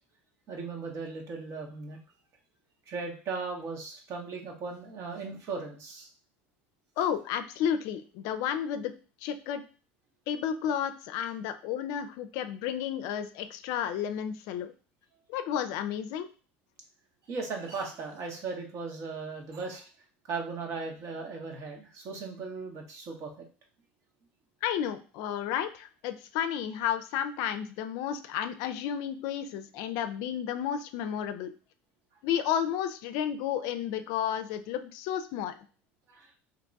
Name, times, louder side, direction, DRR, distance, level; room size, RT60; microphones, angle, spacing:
voice 1, 0.5-2.0 2.9-6.1 17.3-19.8 20.3-23.3 36.1-36.3, right 4 dB, 55° right, 2 dB, 1.0 m, -37 dB
voice 2, 7.0-8.9 9.2-9.6 10.3-14.7 15.3-16.3 24.6-31.5 32.2-35.5, left 9 dB, 70° left, 10 dB, 0.4 m, -32 dB
2.9 x 2.3 x 3.9 m, 0.37 s
supercardioid pair, 90°, 6 cm